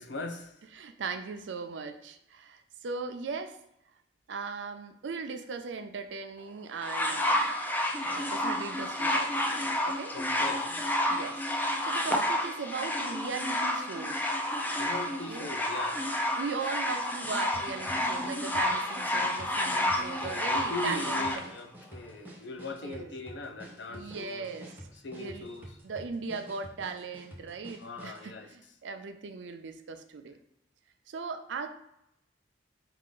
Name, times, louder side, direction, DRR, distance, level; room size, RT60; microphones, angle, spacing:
voice 1, 0.0-0.5 10.1-10.8 14.8-16.1 19.9-24.5 25.0-25.8 27.8-28.5, left 2 dB, 70° left, 6 dB, 0.6 m, -40 dB
voice 2, 0.7-3.6 4.3-7.5 8.1-10.1 11.1-11.4 11.8-14.3 15.1-15.5 16.4-21.4 22.8-23.1 23.9-24.7 25.2-25.5 25.8-30.4 31.1-31.7, right 5 dB, 75° right, 7 dB, 0.4 m, -38 dB
sound 1, 6.8-21.4 22.3-22.4, left 1 dB, 10° left, 0.4 m, -30 dB
sound 2, 17.5-28.3, equal, 10° right, 0.8 m, -49 dB
4.8 x 2.4 x 3.8 m, 0.83 s
head